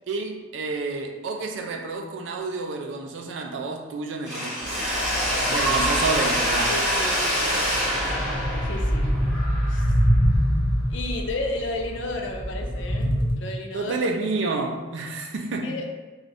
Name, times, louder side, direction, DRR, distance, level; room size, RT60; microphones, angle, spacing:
voice 1, 0.1-4.9 5.5-6.8 13.7-15.8, right 3 dB, 85° right, 4 dB, 0.4 m, -29 dB
Mechanisms, 4.3-10.1, equal, 5° right, 0.8 m, -25 dB
sound 1, 4.6-13.3, equal, 25° left, 0.5 m, -26 dB
voice 2, 6.7-9.1 9.7-9.9 10.9-14.0 14.4-14.5 15.6-15.8, left 2 dB, 80° left, 2 dB, 0.5 m, -33 dB
2.6 x 2.3 x 3.3 m, 1.3 s
head